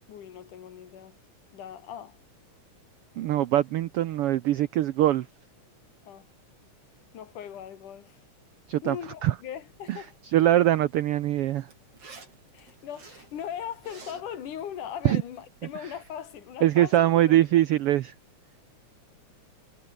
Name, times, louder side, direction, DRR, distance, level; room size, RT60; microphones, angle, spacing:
voice 1, 0.1-1.2 1.5-2.2 6.0-6.3 7.1-8.2 8.8-10.2 12.5-17.6, left 9 dB, 80° left, 3.6 m, -39 dB
voice 2, 3.2-5.3 8.7-9.0 9.2-9.3 9.9-10.0 10.3-11.7 15.0-15.2 16.6-18.1, right 13 dB, 85° right, 1.2 m, -22 dB
Zipper (clothing), 9.7-16.4, right 4 dB, 50° right, 5.9 m, -54 dB
omnidirectional pair, 3.5 m